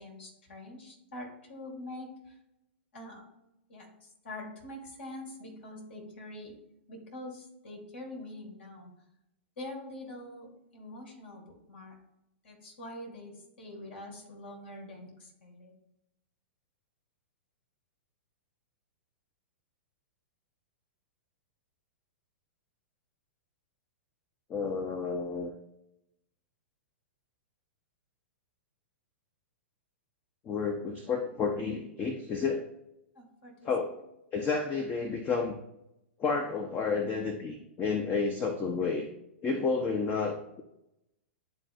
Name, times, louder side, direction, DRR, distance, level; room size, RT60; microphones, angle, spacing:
voice 1, 0.0-2.4 2.9-3.2 3.7-6.5 6.9-8.9 9.6-12.0 12.4-15.7 33.1-33.9, left 1 dB, 65° left, 0 dB, 2.1 m, -45 dB
voice 2, 24.5-25.5 30.5-32.6 33.6-33.9 34.3-35.6 36.2-39.1 39.4-40.6, left 4 dB, 25° left, 6 dB, 0.6 m, -31 dB
10.5 x 3.8 x 2.5 m, 0.87 s
figure-of-eight pair, 105°, 7 cm